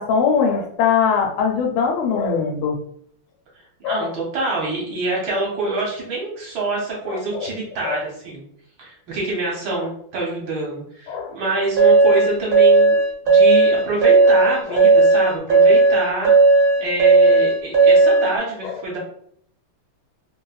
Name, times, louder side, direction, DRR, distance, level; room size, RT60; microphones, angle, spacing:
voice 1, 0.0-2.8 3.8-4.1 7.1-7.5 7.8-8.0 9.7-9.9 11.1-11.3 14.7-14.8 18.6-18.8, left 6 dB, 80° left, 1 dB, 1.5 m, -21 dB
voice 2, 3.8-8.4 8.8-13.0 13.2-19.0, right 2 dB, 65° right, -3 dB, 1.4 m, -26 dB
sound 1, 11.8-18.3, right 3 dB, 45° right, 0.7 m, -14 dB
3.5 x 2.0 x 2.3 m, 0.66 s
omnidirectional pair, 2.4 m